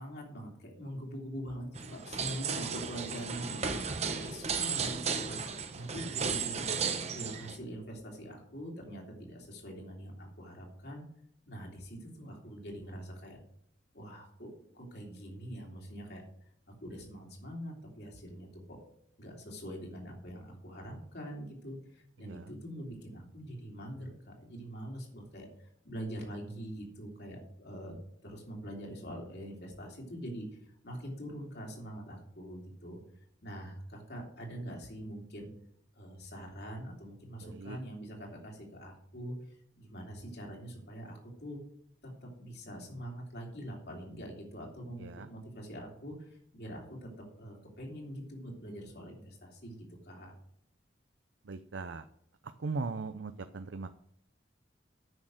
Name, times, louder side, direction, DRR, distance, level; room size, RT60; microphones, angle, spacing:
voice 1, 0.0-3.7 4.2-5.4 5.7-6.6 7.1-11.0 11.5-13.4 13.9-16.2 16.8-18.8 19.2-27.9 28.2-30.5 30.8-33.0 33.4-35.5 35.9-39.3 39.8-41.6 42.0-50.3, equal, 60° left, -1 dB, 3.1 m, -44 dB
sound 1, 1.8-7.6, right 5 dB, 35° right, 0.8 m, -35 dB
voice 2, 22.2-22.5 37.4-37.8 45.0-45.3 51.4-52.0 52.6-53.9, right 4 dB, 75° right, 10 dB, 0.6 m, -39 dB
9.4 x 6.5 x 6.4 m, 0.69 s
head